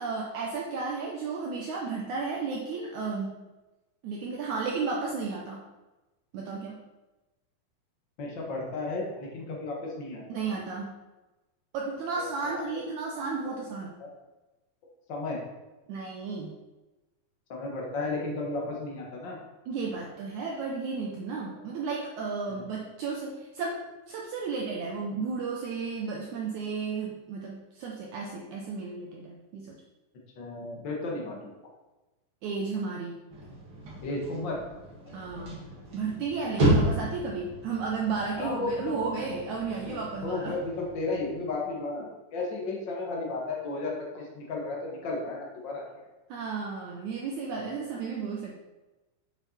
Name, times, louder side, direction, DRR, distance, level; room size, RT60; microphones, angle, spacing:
voice 1, 0.0-3.5 4.0-5.6 6.3-6.9 10.3-11.0 11.7-13.9 15.9-16.5 19.7-29.7 32.4-33.2 35.1-35.7 35.9-40.6 46.3-48.6, right 4 dB, 80° right, -1 dB, 1.7 m, -33 dB
voice 2, 8.2-10.2 12.2-12.8 14.0-14.1 15.1-15.4 17.5-19.4 30.4-31.5 34.0-34.6 38.4-38.9 39.9-46.1 47.6-47.7, left 3 dB, 60° left, -2 dB, 1.2 m, -34 dB
sound 1, 33.3-41.6, right 1 dB, 35° right, 1.8 m, -32 dB
7.3 x 7.1 x 4.2 m, 1.1 s
omnidirectional pair, 4.5 m